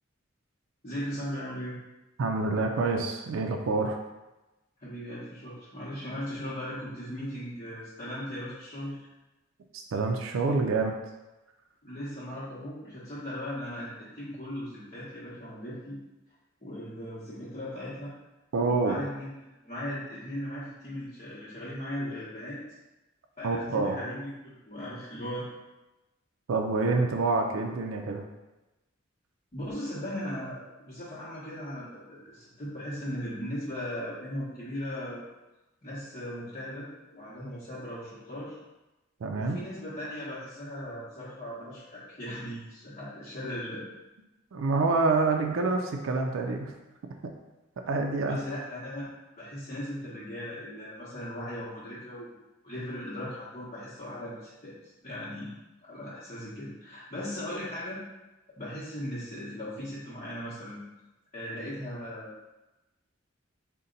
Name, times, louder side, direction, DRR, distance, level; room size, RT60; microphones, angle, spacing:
voice 1, 0.8-1.8 4.8-9.0 11.8-16.0 16.6-18.1 18.6-22.6 23.4-25.5 29.5-35.2 35.8-38.6 39.3-43.8 48.2-49.1 49.4-52.4 52.6-55.5 55.9-58.0 58.6-60.8 61.3-62.3, equal, 35° left, -11 dB, 1.0 m, -38 dB
voice 2, 2.2-4.0 9.7-10.9 18.5-19.0 23.4-24.0 26.5-28.3 39.2-39.6 44.5-46.7 47.9-48.4, right 3 dB, 70° right, 3 dB, 0.4 m, -27 dB
4.0 x 2.2 x 3.8 m, 1.0 s
head